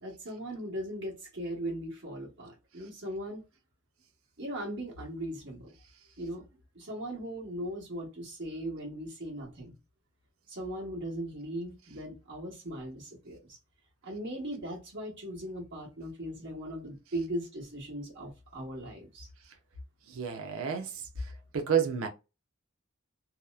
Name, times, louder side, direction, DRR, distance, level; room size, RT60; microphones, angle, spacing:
voice 1, 0.0-3.4 4.4-5.7 6.2-6.4 6.7-9.8 10.5-13.6 14.0-19.3, right 1 dB, 60° right, 1.2 m, -38 dB
voice 2, 20.1-20.9 21.5-22.1, right 7 dB, 85° right, 0.5 m, -29 dB
2.8 x 2.0 x 2.3 m
head